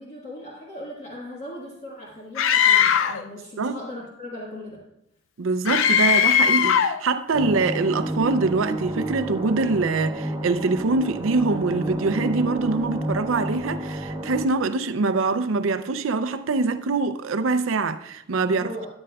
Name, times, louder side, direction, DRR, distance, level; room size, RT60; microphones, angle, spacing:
voice 1, 0.0-4.8 18.6-18.9, left 1 dB, 35° left, 1.6 m, -38 dB
Screaming, 2.4-3.2 5.7-7.0, left 8 dB, 80° left, 0.4 m, -19 dB
voice 2, 5.4-18.9, right 3 dB, 90° right, 0.5 m, -24 dB
sound 1, 7.3-14.4, right 1 dB, 25° right, 1.2 m, -30 dB
13.0 x 8.9 x 2.3 m
head